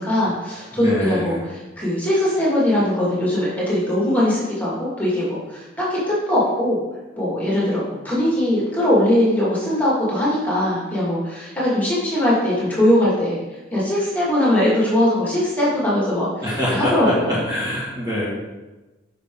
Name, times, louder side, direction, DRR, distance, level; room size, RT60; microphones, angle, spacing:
voice 1, 0.0-1.4 1.8-6.8 7.2-13.4 13.7-16.3 16.7-17.4, left 1 dB, 10° left, -7 dB, 2.2 m, -20 dB
voice 2, 0.7-1.4 16.4-18.3, equal, 20° right, -7 dB, 1.9 m, -24 dB
9.0 x 5.9 x 3.8 m, 1.1 s
head